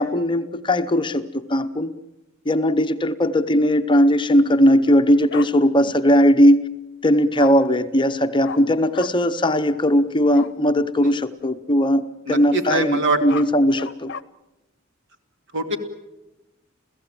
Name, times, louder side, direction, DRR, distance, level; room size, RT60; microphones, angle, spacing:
voice 1, 0.0-1.9 2.5-6.7 7.0-14.1, equal, 25° left, 9 dB, 0.8 m, -18 dB
Bark, 5.3-5.5 7.4-7.5 8.4-8.6 8.9-9.1 10.3-10.5 13.0-14.2, left 6 dB, 60° left, 0.8 m, -33 dB
voice 2, 12.3-13.2 15.5-15.8, right 2 dB, 60° right, 6 dB, 2.7 m, -23 dB
29.5 x 16.0 x 8.9 m, 1.0 s
head